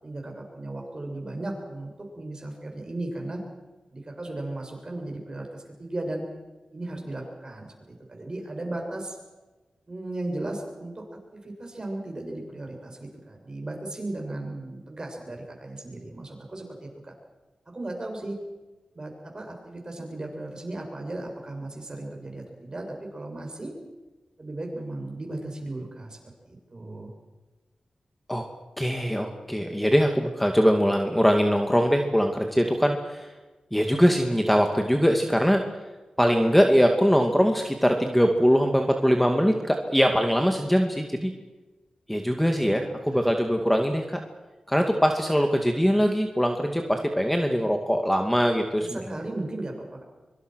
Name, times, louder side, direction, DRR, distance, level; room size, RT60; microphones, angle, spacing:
voice 1, 0.0-3.4 3.9-6.2 6.7-9.2 9.9-11.1 11.3-17.1 17.7-18.4 18.9-23.7 24.4-26.2 26.7-27.1 48.8-50.0, right 2 dB, 35° right, 1 dB, 7.7 m, -36 dB
voice 2, 28.8-33.3 33.7-35.6 36.2-41.3 42.1-44.2 44.7-49.0, equal, 5° left, 4 dB, 2.2 m, -22 dB
24.5 x 24.0 x 6.4 m, 1.2 s
wide cardioid pair, 80°, 2 cm